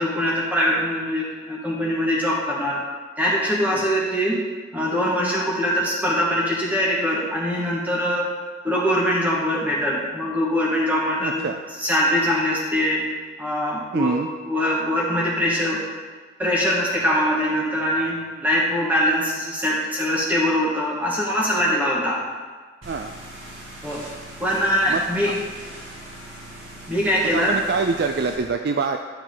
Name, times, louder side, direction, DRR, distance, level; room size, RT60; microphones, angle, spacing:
voice 1, 0.0-2.8 3.2-4.4 4.7-8.3 8.6-11.4 11.8-13.1 13.4-14.1 14.5-15.8 16.4-22.2 23.8-24.1 24.4-25.3 26.9-27.6, equal, 10° right, -5 dB, 1.7 m, -22 dB
voice 2, 11.2-11.6 13.9-14.3 18.4-18.5 22.8-23.2 24.5-24.6 24.9-25.3 27.2-29.0, right 4 dB, 55° right, 5 dB, 0.4 m, -26 dB
sound 1, 22.8-28.4, right 1 dB, 80° right, 2.2 m, -40 dB
11.5 x 6.5 x 3.9 m, 1.5 s
head